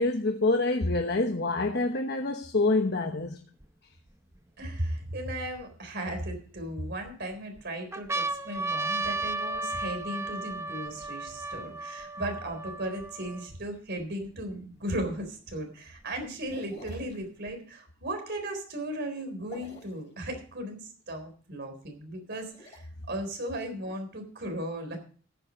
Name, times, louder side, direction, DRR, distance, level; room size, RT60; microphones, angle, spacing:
voice 1, 0.0-3.4, left 2 dB, 55° left, 4 dB, 1.1 m, -26 dB
sound 1, 3.6-3.7 4.4-5.6 6.3-7.1 7.6-7.7 7.9-13.5 14.3-14.4 14.5-15.5 16.5-17.5, right 2 dB, 15° right, 0.7 m, -35 dB
voice 2, 4.6-25.0, right 1 dB, 55° right, 5 dB, 3.9 m, -36 dB
sound 2, 16.5-17.2 19.4-20.0 22.2-22.8, left 1 dB, 35° left, 5.6 m, -48 dB
14.5 x 8.6 x 5.2 m, 0.42 s
head